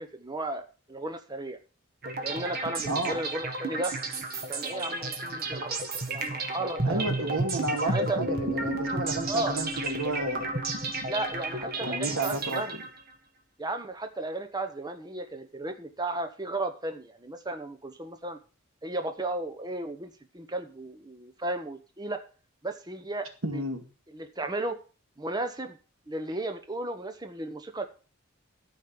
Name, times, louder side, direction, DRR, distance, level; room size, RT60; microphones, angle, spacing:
voice 1, 0.0-1.6 2.2-3.9 4.5-5.8 6.1-7.3 7.8-8.2 9.3-9.6 11.1-12.7 13.6-18.4 18.8-22.2 22.6-23.3 23.5-23.6 24.1-24.8 25.2-25.8 26.1-27.8, right 2 dB, 20° right, 7 dB, 1.0 m, -34 dB
sound 1, 2.0-13.1, right 2 dB, 45° right, 1.8 m, -32 dB
voice 2, 2.9-3.2 6.8-10.6 11.8-12.8 23.4-23.8, right 2 dB, 80° right, 5 dB, 2.3 m, -32 dB
Bass guitar, 8.3-12.1, equal, 5° left, 2.0 m, -38 dB
13.0 x 5.3 x 6.9 m, 0.36 s
head